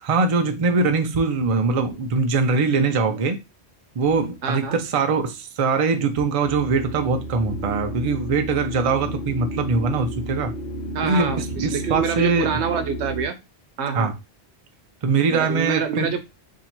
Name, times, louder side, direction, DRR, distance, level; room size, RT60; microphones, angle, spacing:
voice 1, 0.0-3.4 4.0-10.5 11.0-12.6 13.9-14.1 15.0-16.2, right 4 dB, 45° right, 0.5 m, -22 dB
voice 2, 4.4-4.8 10.9-13.4 13.8-14.1 15.3-16.2, right 6 dB, 90° right, 0.9 m, -26 dB
sound 1, 6.4-13.3, right 1 dB, 65° left, 1.1 m, -32 dB
2.8 x 2.7 x 4.3 m
omnidirectional pair, 1.1 m